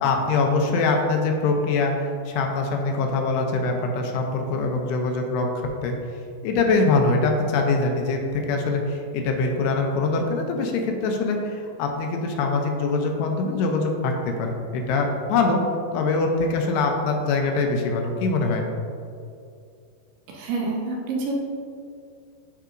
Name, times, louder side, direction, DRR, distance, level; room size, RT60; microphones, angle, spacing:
voice 1, 0.0-5.9 6.4-15.6 15.9-18.6, left 3 dB, 80° left, 2 dB, 2.7 m, -23 dB
voice 2, 20.3-21.3, right 3 dB, 75° right, -2 dB, 2.5 m, -27 dB
12.0 x 4.7 x 2.5 m, 2.4 s
omnidirectional pair, 4.9 m